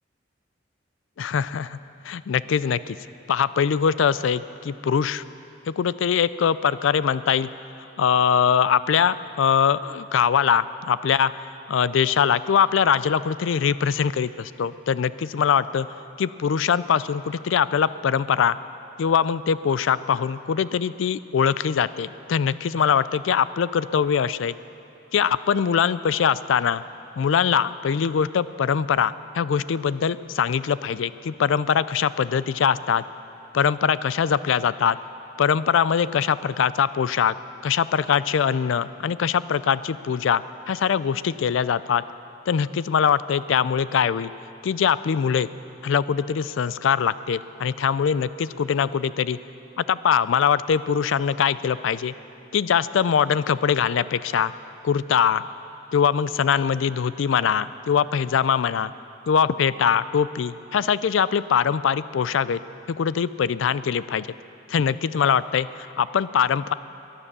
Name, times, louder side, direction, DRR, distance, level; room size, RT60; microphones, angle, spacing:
voice 1, 1.2-1.8 2.0-3.0 3.3-5.2 5.7-7.5 8.0-11.3 11.7-15.9 16.2-18.6 19.0-24.5 25.1-26.8 27.2-33.0 33.5-35.0 35.4-37.3 37.6-40.4 40.7-42.0 42.5-44.3 44.6-45.5 45.8-49.4 49.8-52.1 52.5-54.5 54.8-55.5 55.9-58.9 59.3-62.6 62.9-64.3 64.7-66.7, left 7 dB, 75° left, 16 dB, 0.4 m, -22 dB
21.0 x 9.8 x 6.7 m, 2.8 s
head